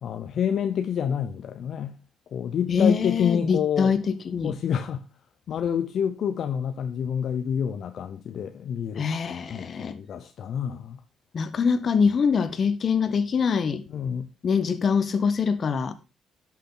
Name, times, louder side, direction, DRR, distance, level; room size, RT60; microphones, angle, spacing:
voice 1, 0.0-2.0 2.3-3.9 4.4-5.1 5.5-9.1 9.5-11.0 13.9-14.3, left 8 dB, 65° left, 0.8 m, -28 dB
voice 2, 2.7-4.0 4.2-4.5 9.0-10.0 11.3-13.8 14.4-15.9, left 6 dB, 50° left, 1.3 m, -24 dB
11.5 x 6.6 x 4.0 m
cardioid pair, 90°, 0 cm